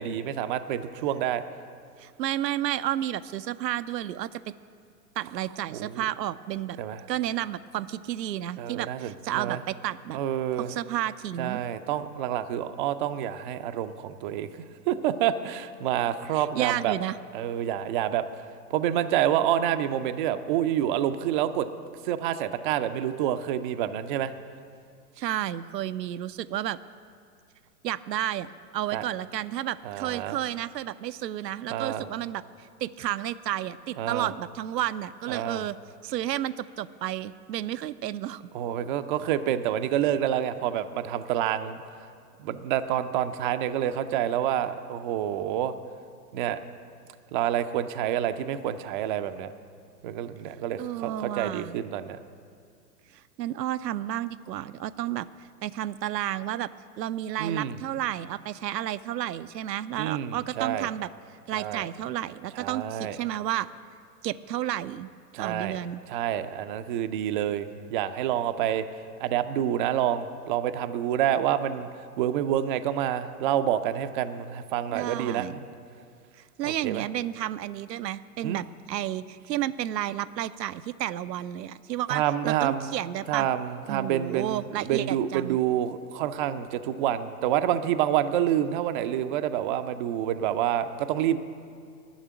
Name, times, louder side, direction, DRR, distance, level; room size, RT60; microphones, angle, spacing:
voice 1, 0.0-1.4 5.7-6.1 6.8-7.0 8.6-9.6 10.1-10.7 11.4-16.9 17.3-18.2 18.7-21.7 22.0-24.3 28.9-29.0 29.8-30.4 31.7-32.1 34.0-34.3 35.3-35.6 38.5-41.8 42.4-45.7 46.3-46.6 47.3-49.5 50.0-52.2 57.4-57.8 60.0-60.9 61.5-61.8 62.5-63.2 65.3-65.8 66.1-68.8 69.2-71.9 72.2-75.5 76.6-77.0 78.4-78.6 82.1-82.9 83.3-91.4, right 11 dB, 35° right, 10 dB, 0.4 m, -28 dB
voice 2, 2.0-4.4 5.2-6.8 7.1-10.2 10.6-11.6 16.3-17.2 25.2-26.8 27.8-32.4 32.8-35.8 36.0-38.4 50.8-51.8 53.4-55.3 55.6-56.7 57.0-61.1 61.5-63.7 64.2-65.1 65.4-66.0 74.9-75.6 76.6-83.5 83.9-85.6, right 12 dB, 85° right, 15 dB, 0.6 m, -31 dB
11.5 x 6.7 x 9.2 m, 2.3 s
hypercardioid pair, 120°, 49 cm